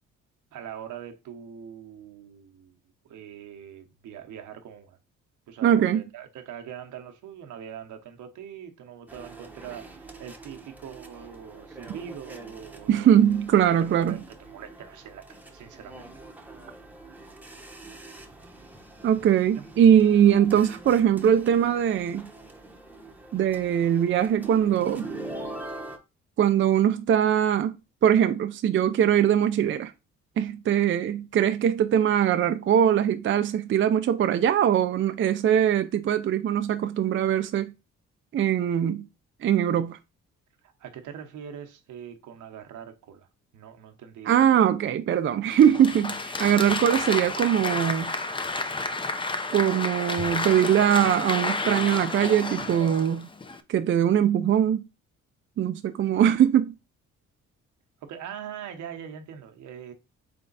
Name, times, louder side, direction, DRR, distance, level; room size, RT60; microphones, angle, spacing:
voice 1, 0.5-2.7 3.0-5.0 5.5-13.1 13.6-16.1 19.5-19.7 20.1-20.3 40.6-43.3 43.5-44.7 58.0-59.9, right 8 dB, 80° right, 0.9 m, -42 dB
voice 2, 5.6-6.0 12.9-14.2 19.0-22.3 23.3-25.1 26.4-27.8 28.0-29.9 30.4-37.7 38.3-39.0 39.4-40.0 44.3-48.1 49.5-53.3 53.7-54.8 55.6-56.7, right 9 dB, 40° right, 0.4 m, -21 dB
sound 1, 9.1-26.0, right 2 dB, 5° right, 0.8 m, -44 dB
Applause, 45.5-53.6, left 3 dB, 15° left, 0.5 m, -31 dB
3.7 x 3.4 x 3.9 m
cardioid pair, 90°, 30 cm